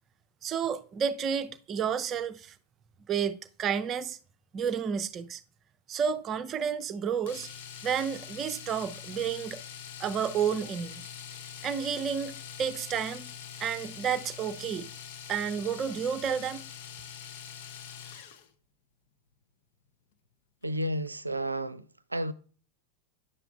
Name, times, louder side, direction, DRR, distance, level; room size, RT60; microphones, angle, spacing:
voice 1, 0.4-2.5 3.1-4.2 4.5-5.4 5.9-7.5 7.8-9.6 10.0-11.0 11.6-13.3 13.6-14.9 15.3-16.7, right 7 dB, 30° right, 0.5 m, -31 dB
Domestic sounds home sounds, 7.3-18.5 20.6-20.8 21.1-21.2, left 8 dB, 50° left, 0.8 m, -44 dB
voice 2, 20.6-22.3, right 1 dB, 85° right, 0.4 m, -32 dB
9.7 x 6.8 x 2.4 m
figure-of-eight pair, 90°, 0 cm